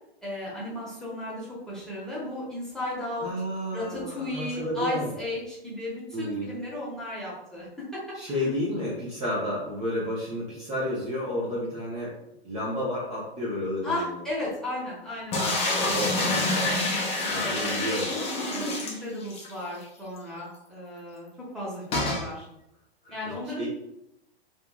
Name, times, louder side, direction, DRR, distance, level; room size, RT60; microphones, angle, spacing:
voice 1, 0.2-3.3 3.7-8.5 13.8-16.1 17.4-17.8 18.5-21.3 21.5-22.5 23.1-23.7, left 1 dB, ahead, -8 dB, 0.9 m, -35 dB
voice 2, 3.2-5.1 6.1-6.6 8.1-12.1 12.4-14.2 15.3-15.6 15.9-16.5 17.3-18.1 23.0-23.7, left 1 dB, 20° right, -7 dB, 0.7 m, -31 dB
sound 1, 15.3-19.5 19.8-19.9 20.2-20.3 21.9-22.3, left 2 dB, 20° left, 0.6 m, -27 dB
2.7 x 2.4 x 2.2 m, 0.83 s
hypercardioid pair, 115°, 31 cm